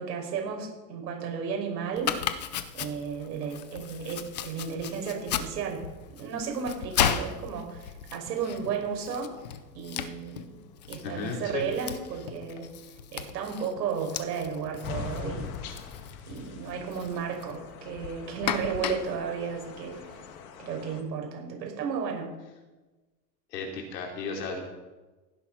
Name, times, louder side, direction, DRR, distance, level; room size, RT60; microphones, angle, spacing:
voice 1, 0.0-2.2 2.7-9.3 9.7-10.5 10.9-12.8 13.1-15.5 16.3-20.2 20.6-22.4, right 6 dB, 85° right, 1 dB, 5.7 m, -33 dB
Domestic sounds home sounds, 2.0-20.4, left 9 dB, 30° left, 0.4 m, -36 dB
voice 2, 11.0-11.6 23.5-24.6, left 4 dB, 80° left, 1 dB, 4.4 m, -34 dB
sound 1, 14.8-21.0, left 6 dB, 60° left, 2.2 m, -42 dB
16.5 x 10.0 x 5.8 m, 1.2 s
supercardioid pair, 175°, 48 cm